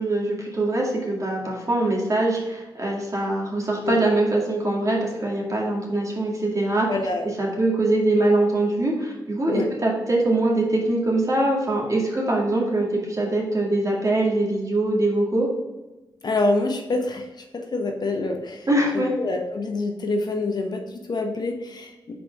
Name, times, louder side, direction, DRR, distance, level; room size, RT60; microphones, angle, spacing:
voice 1, 0.0-6.9 7.4-15.5 18.7-19.1, right 2 dB, 40° right, -2 dB, 2.1 m, -23 dB
voice 2, 6.9-7.3 9.5-9.7 16.2-18.7 18.9-22.1, left 2 dB, 50° left, 3 dB, 1.0 m, -26 dB
4.5 x 4.2 x 5.2 m, 1.1 s
cardioid pair, 60°, 9 cm